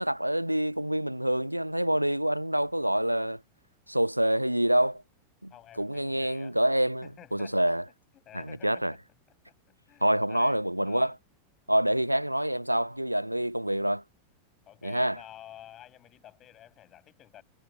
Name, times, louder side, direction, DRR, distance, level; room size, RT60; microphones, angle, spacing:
voice 1, 0.0-3.4 3.9-5.0 5.4-7.8 8.3-8.9 10.0-11.2 11.7-14.0 14.8-15.2, right 1 dB, 90° right, 0.6 m, -27 dB
voice 2, 5.5-6.6 7.0-7.6 8.3-9.0 9.5-11.1 12.0-12.1 14.7-17.4, left 12 dB, 30° left, 7.3 m, -51 dB
figure-of-eight pair, 90°, 0 cm